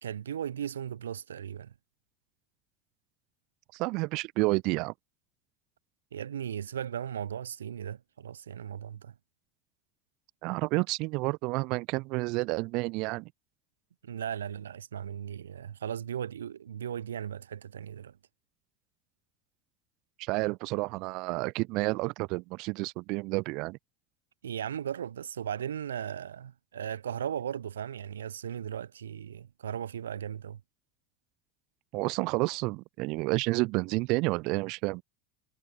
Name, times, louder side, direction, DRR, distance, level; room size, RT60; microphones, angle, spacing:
voice 1, 0.0-1.7 6.1-9.1 14.0-18.2 24.4-30.6, right 9 dB, 75° right, 1.0 m, -37 dB
voice 2, 3.7-4.9 10.4-13.3 20.2-23.8 31.9-35.0, right 25 dB, 55° right, 0.4 m, -30 dB
figure-of-eight pair, 70°, 0 cm